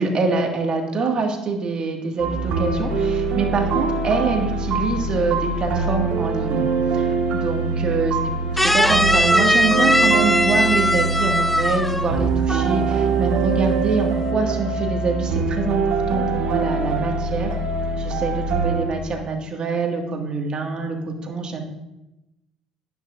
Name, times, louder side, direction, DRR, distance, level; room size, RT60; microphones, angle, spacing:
voice 1, 0.0-6.7 6.9-8.2 8.6-15.8 16.1-17.6 18.0-21.6, right 3 dB, 40° right, 2 dB, 2.1 m, -25 dB
sound 1, 2.2-18.9, right 4 dB, 60° right, 1.8 m, -23 dB
sound 2, 8.6-12.2 12.5-12.8, left 1 dB, 5° left, 0.3 m, -19 dB
17.5 x 6.0 x 2.7 m, 0.95 s
hypercardioid pair, 60°, 2 cm